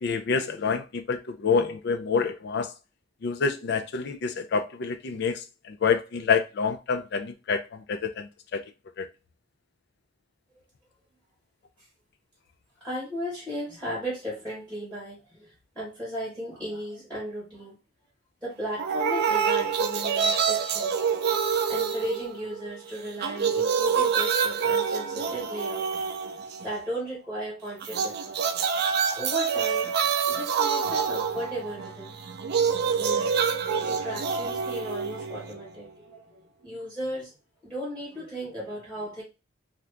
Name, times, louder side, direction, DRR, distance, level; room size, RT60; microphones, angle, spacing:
voice 1, 0.0-2.7 3.2-8.6 9.0-9.1, left 5 dB, 60° left, 0.4 m, -27 dB
voice 2, 12.8-17.8 18.4-20.9 21.7-25.9 26.2-28.4 29.1-29.9 30.3-32.1 33.0-33.3 33.8-37.3 37.6-39.2, equal, 5° left, 1.4 m, -36 dB
sound 1, 18.8-22.8 23.1-26.8 27.8-35.8, right 6 dB, 55° right, 0.4 m, -27 dB
2.8 x 2.4 x 3.3 m
head